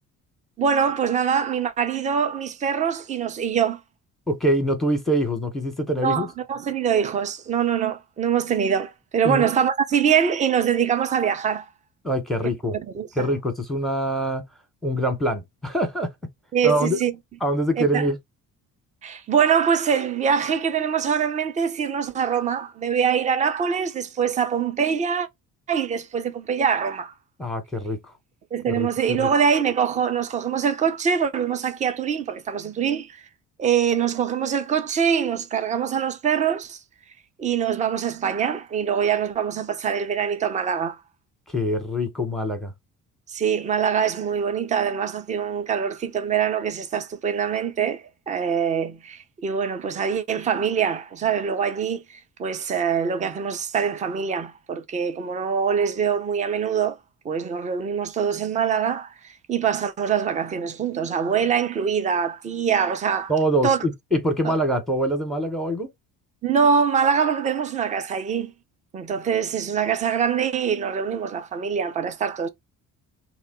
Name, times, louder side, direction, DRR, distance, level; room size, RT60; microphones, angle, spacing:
voice 1, 0.6-3.8 6.0-11.7 12.7-13.3 16.5-17.1 17.8-18.1 19.0-25.3 25.7-27.1 28.5-33.3 33.6-36.8 37.4-41.0 43.3-57.0 57.2-63.3 63.6-63.8 64.4-64.6 66.4-68.5 68.9-72.5, right 7 dB, 15° right, 0.3 m, -24 dB
voice 2, 4.3-6.3 9.2-9.5 12.0-12.8 13.2-14.4 14.8-16.1 16.6-17.0 17.4-18.2 27.4-28.0 28.7-29.3 41.5-42.7 63.3-65.9, equal, ahead, 0.9 m, -24 dB
2.9 x 2.1 x 2.9 m
figure-of-eight pair, 45°, 48 cm